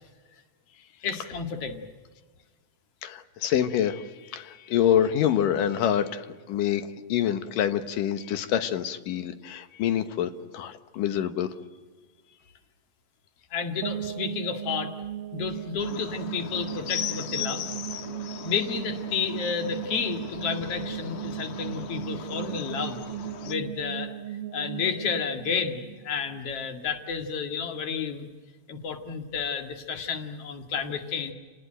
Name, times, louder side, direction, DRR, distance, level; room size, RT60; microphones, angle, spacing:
voice 1, 1.0-1.8 13.5-14.9 15.3-17.6 18.4-23.0 23.5-24.1 24.5-28.3 28.7-31.3, left 6 dB, 50° left, 6 dB, 2.8 m, -31 dB
voice 2, 3.0-11.5, left 10 dB, 80° left, 10 dB, 2.9 m, -26 dB
sound 1, 13.8-26.7, right 11 dB, 80° right, 2.5 m, -37 dB
sound 2, 15.8-23.5, left 10 dB, 65° left, 2.3 m, -39 dB
29.5 x 19.0 x 9.0 m, 1.4 s
omnidirectional pair, 3.8 m